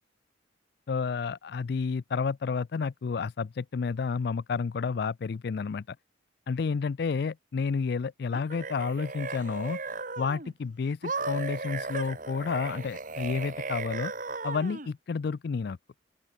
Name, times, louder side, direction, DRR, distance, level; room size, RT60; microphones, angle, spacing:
voice 1, 0.9-6.0 6.5-9.8 10.2-14.1 14.4-15.8, left 5 dB, 60° left, 0.4 m, -30 dB
sound 1, 8.3-10.5 11.0-14.9, right 3 dB, 45° right, 2.9 m, -36 dB
open air
head